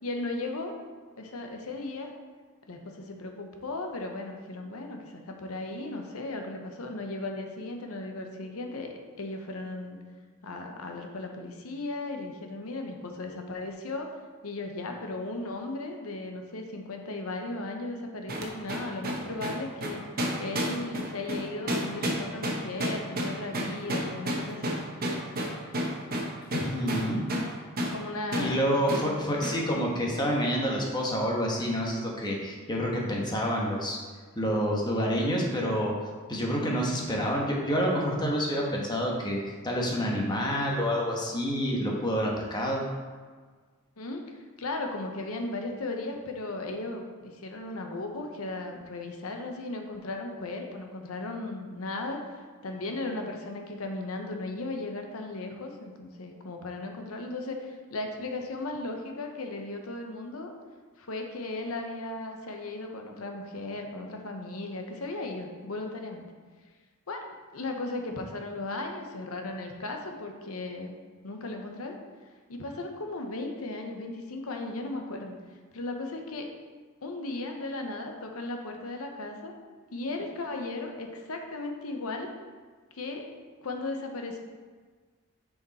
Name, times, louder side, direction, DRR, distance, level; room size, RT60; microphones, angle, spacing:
voice 1, 0.0-0.7 1.2-2.1 2.7-10.0 10.4-14.2 14.4-20.0 20.4-24.8 27.9-28.6 29.0-29.2 29.7-30.0 44.0-44.2 44.6-52.2 52.6-60.5 61.0-66.3 67.1-67.2 67.5-70.9 71.2-72.0 72.5-75.3 75.7-76.5 77.0-79.6 79.9-82.3 82.9-83.3 83.6-84.4, left 2 dB, 80° left, 3 dB, 0.9 m, -36 dB
sound 1, 18.3-27.5 27.8-28.0 28.3-28.5 28.9-29.1 29.4-29.6, equal, 45° right, 0.9 m, -31 dB
voice 2, 26.5-27.3 28.4-34.0 34.3-35.9 36.3-42.8, equal, 20° left, -2 dB, 1.2 m, -28 dB
6.3 x 4.9 x 4.1 m, 1.5 s
head